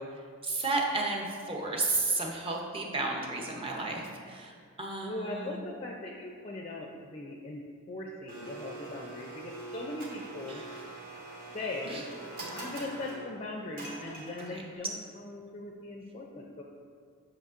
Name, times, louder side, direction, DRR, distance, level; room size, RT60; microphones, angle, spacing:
voice 1, 0.4-5.6 10.5-10.8 11.8-12.0 14.5-14.6, right 3 dB, 25° right, 0 dB, 0.7 m, -33 dB
voice 2, 5.0-7.6 7.9-10.6 11.5-12.0 12.5-16.6, left 2 dB, 30° left, 0 dB, 0.4 m, -39 dB
Domestic sounds home sounds, 8.3-14.8, right 2 dB, 40° right, 1.1 m, -44 dB
8.0 x 5.7 x 2.5 m, 2.1 s
head